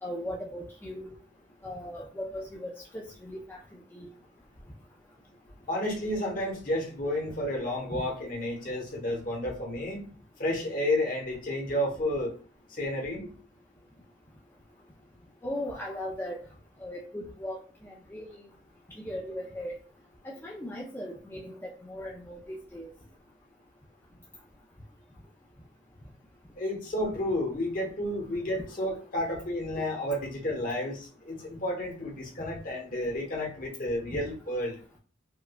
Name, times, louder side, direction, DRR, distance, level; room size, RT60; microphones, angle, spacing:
voice 1, 0.0-1.1 1.6-3.6 3.9-4.1 7.9-8.0 15.4-16.4 16.8-17.6 17.8-18.4 19.0-19.7 20.2-22.9, left 1 dB, 10° left, -3 dB, 0.4 m, -38 dB
voice 2, 5.7-10.0 10.4-12.3 12.7-13.3 26.6-34.8, left 1 dB, 45° left, 0 dB, 1.0 m, -31 dB
4.7 x 2.2 x 2.2 m, 0.40 s
head